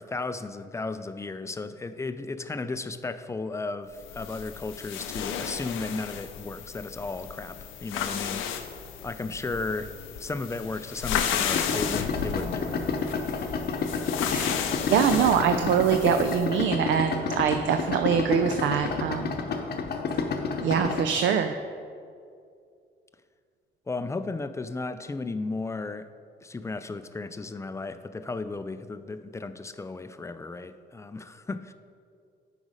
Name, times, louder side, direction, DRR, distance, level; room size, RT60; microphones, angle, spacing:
voice 1, 0.0-8.7 9.0-12.8 23.9-26.1 26.4-31.7, left 3 dB, 15° left, 11 dB, 0.4 m, -34 dB
sound 1, 4.0-16.5, left 8 dB, 85° left, 0.6 m, -34 dB
Idling, 11.5-21.1, left 5 dB, 55° left, 0.8 m, -30 dB
voice 2, 14.9-19.4 20.6-21.6, right 8 dB, 70° right, 8 dB, 0.4 m, -24 dB
8.1 x 5.0 x 5.0 m, 2.4 s
cardioid pair, 90°, 20 cm